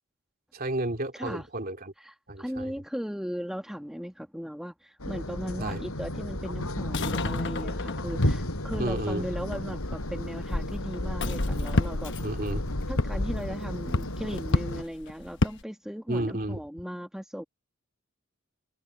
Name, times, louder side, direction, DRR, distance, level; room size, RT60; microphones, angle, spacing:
voice 1, 0.5-1.9 2.3-2.7 5.6-5.8 8.8-9.2 12.2-12.6 16.1-16.6, right 1 dB, 45° right, 2.9 m, -31 dB
voice 2, 1.1-1.5 2.0-12.1 12.9-17.4, equal, ahead, 1.5 m, -37 dB
sound 1, 5.0-14.8, left 1 dB, 90° left, 7.5 m, -33 dB
sound 2, 6.4-15.6, left 2 dB, 55° left, 1.1 m, -31 dB
head